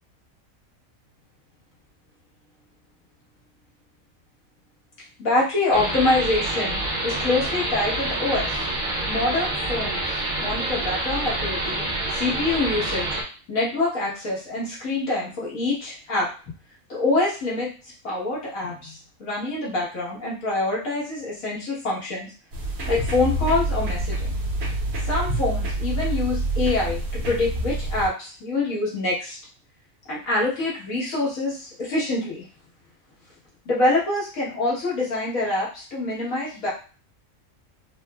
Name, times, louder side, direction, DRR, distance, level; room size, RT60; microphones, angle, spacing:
voice 1, 5.2-8.6 9.1-10.0 10.4-13.1 13.5-16.3 16.9-17.7 18.0-22.3 22.9-24.3 25.0-29.4 30.1-32.5 33.6-36.7, left 2 dB, 80° left, -6 dB, 1.7 m, -25 dB
sound 1, 5.7-13.2, right 2 dB, 50° right, 0.7 m, -27 dB
sound 2, 22.5-28.1, right 1 dB, 80° right, 1.1 m, -27 dB
3.9 x 2.0 x 2.2 m, 0.36 s
omnidirectional pair, 1.4 m